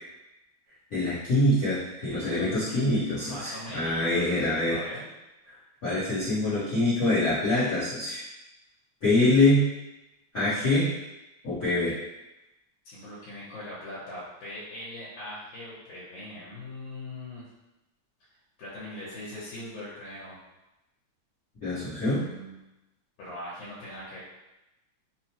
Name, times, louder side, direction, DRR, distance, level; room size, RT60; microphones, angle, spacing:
voice 1, 0.9-4.8 5.8-8.2 9.0-9.7 10.3-10.9 11.4-11.9 21.6-22.2, left 1 dB, 65° left, -13 dB, 0.9 m, -24 dB
voice 2, 2.1-5.1 12.9-17.4 18.6-20.4 22.0-22.6 23.2-24.2, left 1 dB, 85° left, -8 dB, 2.3 m, -41 dB
4.8 x 2.0 x 2.9 m, 0.97 s
omnidirectional pair, 3.4 m